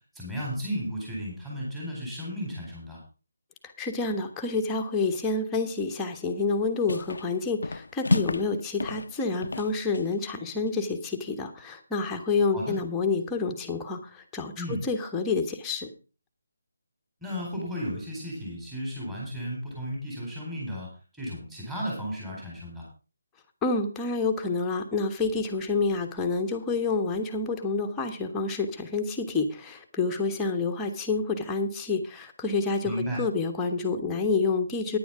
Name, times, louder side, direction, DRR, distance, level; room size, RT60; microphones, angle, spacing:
voice 1, 0.1-3.0 12.5-12.8 14.6-14.8 17.2-20.9 21.2-22.8 32.8-33.2, equal, 5° right, -5 dB, 4.3 m, -34 dB
voice 2, 3.6-15.9 23.6-35.0, left 4 dB, 10° left, 2 dB, 1.3 m, -28 dB
sound 1, 6.3-6.6 6.9-7.3 7.6-8.5 8.8-10.2, left 3 dB, 80° left, 0.6 m, -30 dB
10.5 x 10.0 x 4.8 m, 0.34 s
figure-of-eight pair, 165°, 0 cm